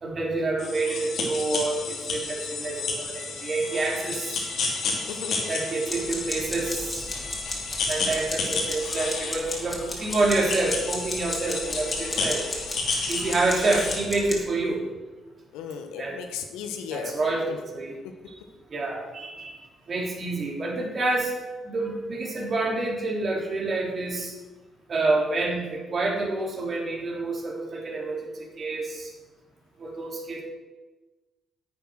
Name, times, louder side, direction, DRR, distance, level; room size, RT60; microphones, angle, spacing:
voice 1, 0.0-4.4 5.5-7.1 7.9-12.4 13.1-14.8 16.0-16.2 16.9-17.9 18.3-18.4 18.7-19.5 19.9-21.3 21.6-24.3 24.9-28.3 28.6-29.1 29.8-30.4, right 2 dB, 50° right, -1 dB, 3.7 m, -28 dB
sound 1, 0.6-14.0, left 4 dB, 65° left, 3.2 m, -32 dB
voice 2, 5.1-5.5 15.5-17.6, left 7 dB, 80° left, 6 dB, 1.2 m, -36 dB
sound 2, 5.9-14.4, left 2 dB, 30° left, 3.5 m, -35 dB
10.5 x 8.4 x 6.4 m, 1.2 s
hypercardioid pair, 50°, 0 cm